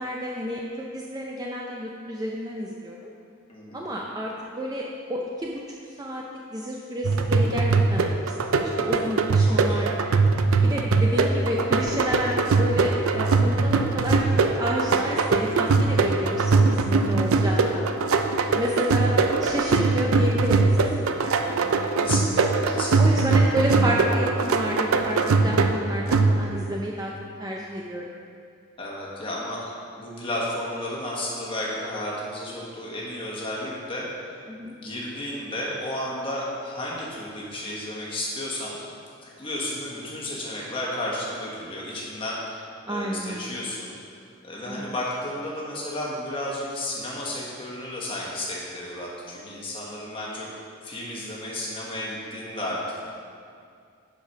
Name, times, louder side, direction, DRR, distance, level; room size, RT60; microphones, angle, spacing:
voice 1, 0.0-3.0 3.7-5.6 6.0-6.2 6.5-8.0 8.5-9.9 10.7-17.8 18.5-20.7 21.2-21.3 23.0-27.1 27.4-28.1 34.5-34.7 42.8-43.6 44.7-44.8, equal, 20° right, -2 dB, 0.4 m, -30 dB
voice 2, 3.5-3.9 9.4-10.0 15.3-15.6 22.0-23.4 28.8-29.7 30.0-34.4 34.8-38.8 39.2-43.9 44.4-50.5 50.8-52.8, left 1 dB, 25° left, -4 dB, 1.3 m, -33 dB
sound 1, 7.0-26.7, right 4 dB, 75° right, 0.5 m, -22 dB
7.1 x 5.0 x 5.8 m, 2.3 s
head